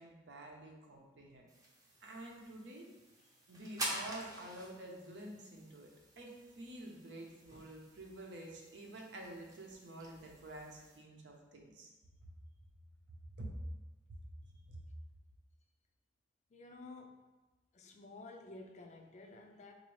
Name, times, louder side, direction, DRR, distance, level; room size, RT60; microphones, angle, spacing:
voice 1, 0.0-1.5 2.0-2.9 3.5-11.9 13.4-13.5 14.1-14.2 14.7-14.8, right 1 dB, 80° right, 0 dB, 0.7 m, -49 dB
sound 1, 1.5-11.0, right 1 dB, 20° right, 0.6 m, -48 dB
voice 2, 16.5-17.3 17.7-19.7, left 2 dB, 40° left, 3 dB, 0.4 m, -52 dB
4.0 x 2.6 x 3.1 m, 1.2 s
head